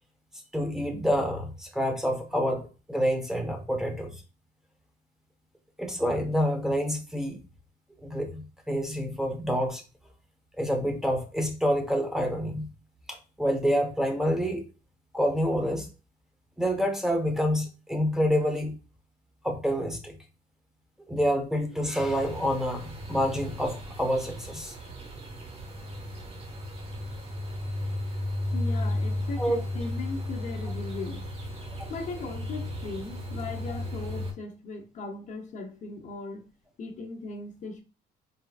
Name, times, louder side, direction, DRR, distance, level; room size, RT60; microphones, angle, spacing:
voice 1, 0.5-4.1 5.8-7.4 8.0-9.8 10.6-12.7 13.1-14.6 15.1-15.9 16.6-18.8 19.4-20.2 21.1-24.7 29.4-29.6, equal, 5° right, 0.9 m, -27 dB
sound 1, 22.0-34.3, left 1 dB, 35° right, 1.3 m, -34 dB
voice 2, 28.5-31.3 31.9-36.5 36.8-37.8, left 3 dB, 45° left, 0.7 m, -38 dB
4.1 x 3.8 x 2.3 m
cardioid pair, 110°, 17 cm